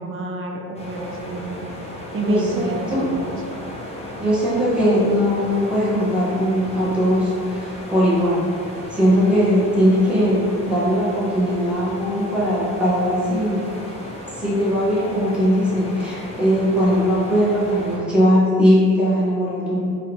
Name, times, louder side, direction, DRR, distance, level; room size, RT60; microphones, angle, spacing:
voice 1, 0.0-1.7 2.1-3.6, right 2 dB, 30° right, 1 dB, 0.4 m, -30 dB
sound 1, 0.7-18.0, left 1 dB, 15° left, 0.6 m, -35 dB
voice 2, 2.1-3.0 4.2-8.5 8.9-13.7 14.4-19.8, equal, ahead, -9 dB, 1.1 m, -19 dB
2.4 x 2.1 x 3.0 m, 2.2 s
hypercardioid pair, 45°, 42 cm